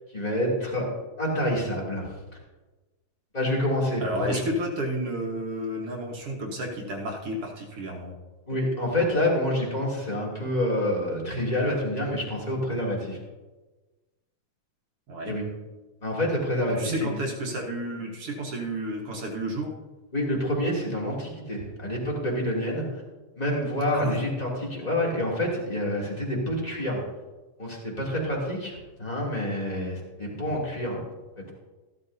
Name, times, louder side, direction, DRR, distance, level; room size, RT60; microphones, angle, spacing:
voice 1, 0.1-0.9 1.2-2.1 3.3-4.4 8.5-13.2 15.2-15.4 16.0-17.3 20.1-23.0 23.4-27.0 27.6-31.0, left 1 dB, 15° left, -4 dB, 2.6 m, -27 dB
voice 2, 4.0-8.1 15.1-15.4 16.8-19.7 23.9-24.2 30.4-30.6, right 1 dB, 55° right, 0 dB, 2.1 m, -31 dB
15.5 x 12.5 x 2.7 m, 1.2 s
omnidirectional pair, 3.3 m